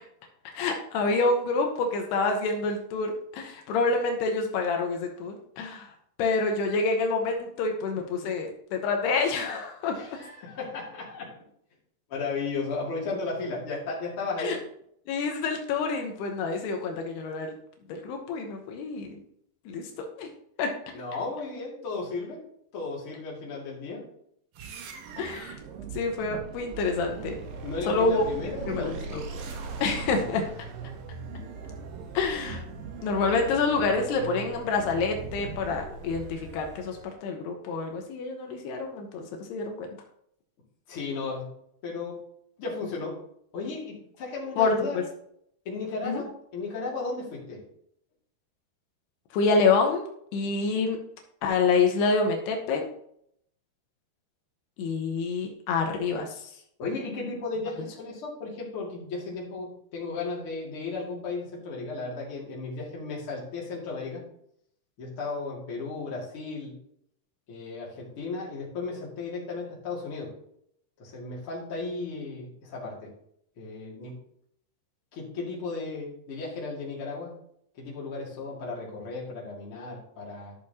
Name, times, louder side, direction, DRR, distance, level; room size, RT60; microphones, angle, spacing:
voice 1, 0.6-5.9 6.2-10.2 14.4-14.6 15.1-17.5 17.9-19.2 19.7-19.9 20.2-20.3 20.6-20.7 25.2-25.6 25.9-27.4 27.9-28.3 28.7-29.2 29.8-30.4 32.1-32.6 33.0-39.9 44.6-45.0 46.0-46.2 49.3-50.0 50.3-51.0 51.4-52.9 54.8-56.5, left 4 dB, 80° left, 3 dB, 3.0 m, -27 dB
voice 2, 9.9-11.3 12.1-14.6 20.9-22.4 22.7-24.0 27.6-29.8 40.9-41.5 41.8-42.2 42.6-43.2 43.5-45.0 45.6-47.6 56.8-64.2 65.0-66.7 67.5-70.3 71.0-73.1 73.6-74.1 75.1-77.3 77.7-80.5, left 3 dB, 35° left, -4 dB, 2.9 m, -35 dB
sound 1, 24.5-37.2, right 4 dB, 70° right, 2.7 m, -40 dB
12.5 x 6.6 x 2.9 m, 0.70 s
omnidirectional pair, 4.6 m